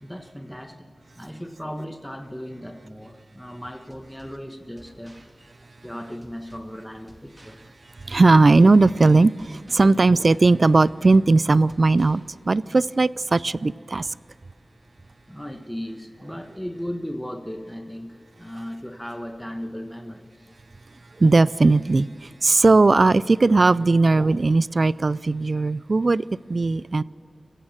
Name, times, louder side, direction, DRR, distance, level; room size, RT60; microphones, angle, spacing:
voice 1, 0.0-5.2 5.8-7.6 15.3-20.3, equal, 5° left, 1.4 m, -36 dB
sound 1, 3.9-12.9, right 1 dB, 20° right, 2.7 m, -54 dB
voice 2, 8.0-14.1 21.2-27.0, right 3 dB, 55° right, 0.4 m, -18 dB
25.0 x 16.0 x 7.4 m
wide cardioid pair, 60°, 0 cm